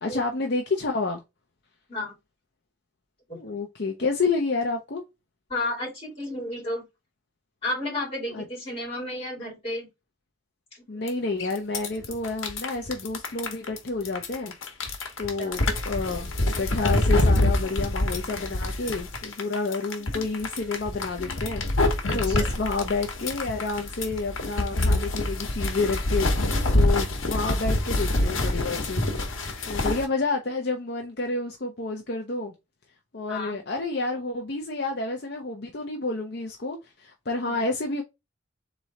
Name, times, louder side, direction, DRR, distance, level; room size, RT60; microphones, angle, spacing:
voice 1, 0.0-1.2 3.3-5.0 8.3-8.4 10.9-14.5 15.2-15.6 15.9-21.7 22.1-26.3 26.7-29.0 29.7-32.5 33.1-38.0, left 3 dB, 55° left, 0.6 m, -29 dB
voice 2, 5.5-6.8 7.6-9.9 10.7-11.0 15.4-15.5 22.1-22.6 33.3-33.6 37.4-37.7, left 1 dB, 30° left, 2.6 m, -33 dB
sound 1, 11.1-11.2 11.4-30.0, left 1 dB, 85° left, 1.1 m, -26 dB
3.7 x 3.1 x 4.1 m
head